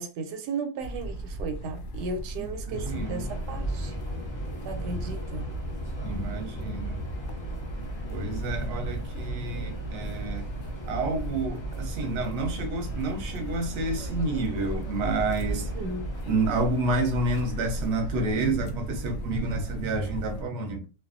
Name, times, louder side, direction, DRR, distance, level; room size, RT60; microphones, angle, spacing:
voice 1, 0.0-4.0 4.6-5.5 15.5-16.1, right 3 dB, 90° right, 1.2 m, -35 dB
sound 1, 0.8-20.4, right 2 dB, 75° left, 0.6 m, -37 dB
voice 2, 2.4-3.3 6.0-7.0 8.1-10.6 10.9-15.7 16.3-20.8, right 2 dB, 55° right, 0.8 m, -29 dB
Subway metro underground, 2.7-18.1, equal, 25° left, 0.6 m, -37 dB
2.6 x 2.2 x 2.4 m
omnidirectional pair, 1.7 m